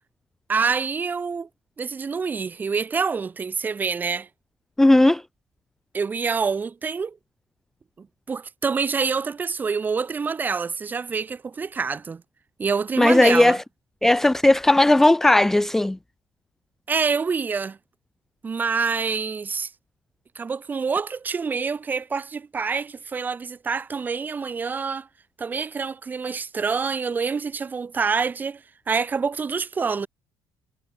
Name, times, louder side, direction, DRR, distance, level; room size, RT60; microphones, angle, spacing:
voice 1, 0.5-1.5 1.8-4.3 5.9-7.2 8.0-12.2 12.6-13.6 16.9-17.8 18.4-19.7 20.3-25.1 25.4-30.1, right 5 dB, 25° right, 4.1 m, -26 dB
voice 2, 4.8-5.2 13.0-13.6 14.0-16.0, left 1 dB, 5° left, 0.4 m, -16 dB
cardioid pair, 150°, 7 cm